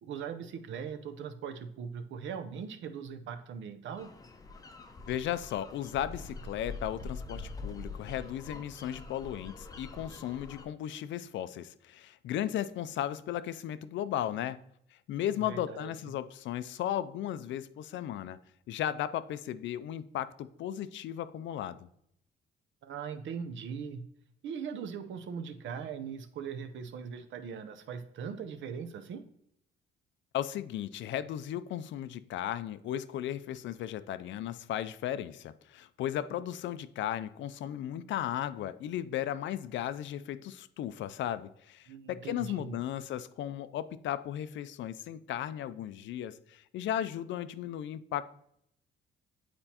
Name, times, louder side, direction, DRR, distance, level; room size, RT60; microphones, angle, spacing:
voice 1, 0.0-4.1 15.4-15.9 22.8-24.0 24.4-29.2 41.9-42.8, right 6 dB, 70° right, 0.6 m, -40 dB
sound 1, 4.0-10.6, left 3 dB, 20° left, 0.6 m, -44 dB
voice 2, 5.1-14.6 15.1-18.4 18.7-21.9 30.3-48.2, left 11 dB, 65° left, 0.4 m, -35 dB
8.9 x 4.3 x 2.9 m
cardioid pair, 145°, 20 cm